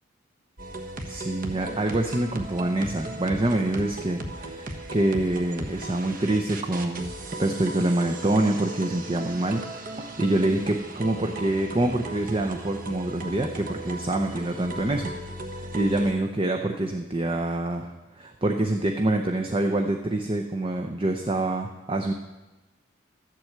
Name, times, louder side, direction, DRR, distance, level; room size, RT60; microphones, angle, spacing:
sound 1, 0.6-16.1, right 1 dB, 45° right, 1.3 m, -37 dB
voice 1, 1.1-7.1 7.4-15.1 15.5-22.1, right 1 dB, 25° right, 3 dB, 0.7 m, -26 dB
13.0 x 7.7 x 7.9 m, 1.1 s
head